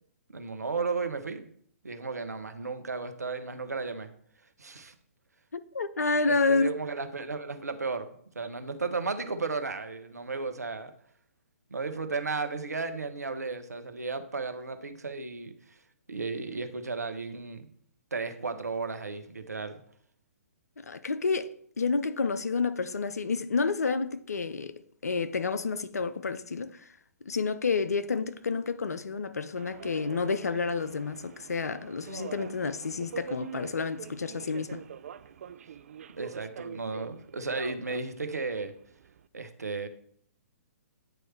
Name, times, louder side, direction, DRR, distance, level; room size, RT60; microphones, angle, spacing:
voice 1, 0.3-1.5 1.8-4.1 4.6-4.9 6.3-10.9 11.7-15.8 16.1-17.7 18.1-19.8 34.6-34.8 36.1-38.7 39.3-39.9, right 4 dB, 80° right, 0.9 m, -34 dB
voice 2, 5.5-6.7 20.8-24.7 25.0-26.8 27.3-34.8, left 4 dB, 75° left, 0.5 m, -29 dB
Subway metro underground, 29.6-39.3, right 8 dB, 55° right, 0.3 m, -45 dB
9.1 x 3.2 x 4.5 m
figure-of-eight pair, 125°, 9 cm